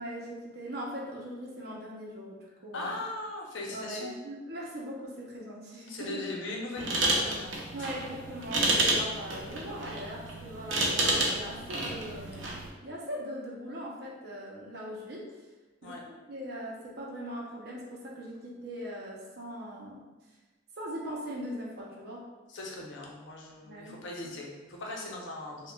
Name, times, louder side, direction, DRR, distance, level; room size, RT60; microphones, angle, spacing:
voice 1, 0.0-3.0 3.7-6.2 7.7-15.3 15.8-20.1 20.8-22.3 23.6-24.0, equal, 55° right, -3 dB, 0.8 m, -40 dB
voice 2, 2.7-4.2 5.9-7.9 15.8-16.0 22.5-25.7, left 2 dB, 75° left, -1 dB, 0.7 m, -39 dB
sound 1, 6.8-12.7, right 2 dB, 85° right, 0.6 m, -30 dB
4.8 x 2.3 x 2.3 m, 1.2 s
head